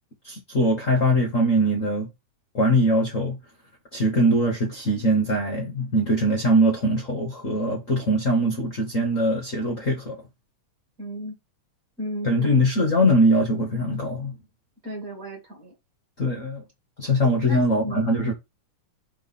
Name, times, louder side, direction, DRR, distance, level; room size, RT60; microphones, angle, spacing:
voice 1, 0.2-2.1 2.5-3.4 3.9-10.2 12.2-14.4 16.2-16.6 17.0-18.3, equal, 70° left, 0.7 m, -22 dB
voice 2, 11.0-11.4 12.0-12.7 14.8-15.7 17.5-18.1, left 1 dB, 30° right, 1.9 m, -34 dB
5.1 x 4.7 x 4.0 m
omnidirectional pair, 3.5 m